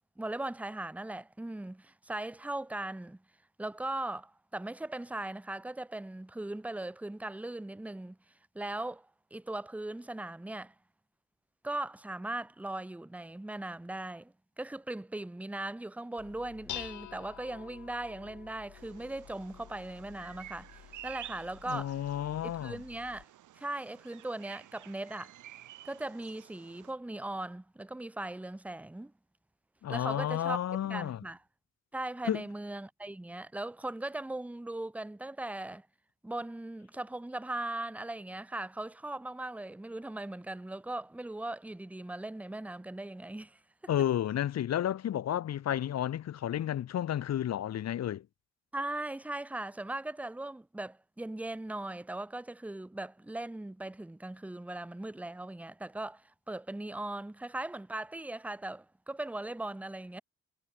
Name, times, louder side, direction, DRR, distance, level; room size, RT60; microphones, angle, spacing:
voice 1, 0.2-3.2 3.6-8.2 8.5-9.1 9.3-10.7 11.6-22.0 22.4-23.3 23.6-25.3 25.8-29.1 29.9-30.6 30.8-31.4 31.9-35.9 36.2-43.6 48.7-60.2, right 2 dB, 5° right, 0.8 m, -39 dB
Dishes pots and pans, 16.2-23.2, left 12 dB, 75° left, 3.3 m, -49 dB
Bird vocalization bird call bird song, 18.7-26.9, right 13 dB, 80° right, 3.8 m, -52 dB
voice 2, 21.7-22.8 29.8-31.2 32.2-32.4 43.9-48.2, left 11 dB, 60° left, 1.3 m, -32 dB
cardioid pair, 90°, 30 cm